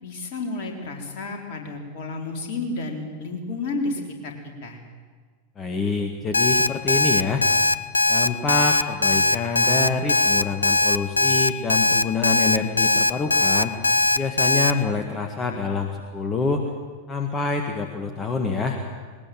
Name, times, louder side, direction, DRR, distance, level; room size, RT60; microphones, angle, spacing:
voice 1, 0.0-4.4 4.6-4.8, left 3 dB, 50° left, 2 dB, 4.0 m, -31 dB
voice 2, 5.6-7.4 8.1-13.8 14.1-16.7 17.1-18.8, left 4 dB, 25° left, 4 dB, 1.9 m, -26 dB
Alarm, 6.3-14.7, left 2 dB, 80° left, 0.5 m, -19 dB
20.5 x 19.5 x 7.8 m, 1.5 s
figure-of-eight pair, 90°, 0 cm